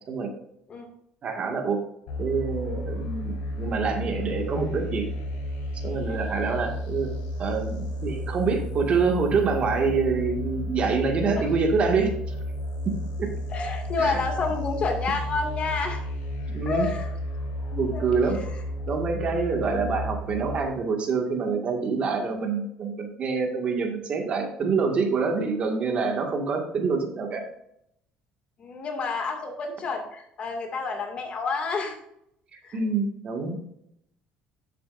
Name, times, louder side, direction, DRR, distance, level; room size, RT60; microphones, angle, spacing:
voice 1, 1.2-1.8 2.2-5.1 5.8-7.1 7.4-12.1 13.2-13.3 14.0-14.2 16.5-16.9 17.7-18.4 18.9-27.4 32.5-33.6, right 4 dB, 45° right, 3 dB, 2.0 m, -26 dB
sound 1, 2.1-20.6, equal, 85° left, 3.5 m, -32 dB
voice 2, 13.5-16.0 16.7-17.1 17.9-18.5 28.6-32.0 32.6-32.8, left 4 dB, 45° left, 3 dB, 2.3 m, -29 dB
11.5 x 7.5 x 2.6 m, 0.75 s
cardioid pair, 105°, 3 cm